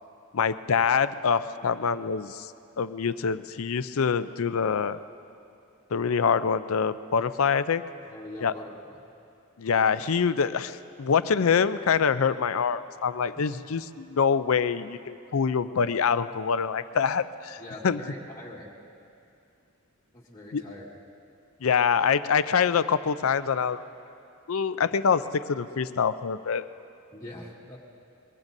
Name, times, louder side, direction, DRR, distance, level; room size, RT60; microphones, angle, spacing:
voice 1, 0.3-2.5 2.8-5.0 5.9-7.8 8.4-8.5 9.6-18.0 20.5-20.6 21.6-23.8 24.5-26.7, left 6 dB, 75° left, 13 dB, 0.5 m, -25 dB
voice 2, 8.1-9.1 13.3-13.6 17.6-18.8 20.1-21.0 27.1-27.8, left 1 dB, 15° left, -6 dB, 1.7 m, -43 dB
23.0 x 22.5 x 2.7 m, 2.6 s
head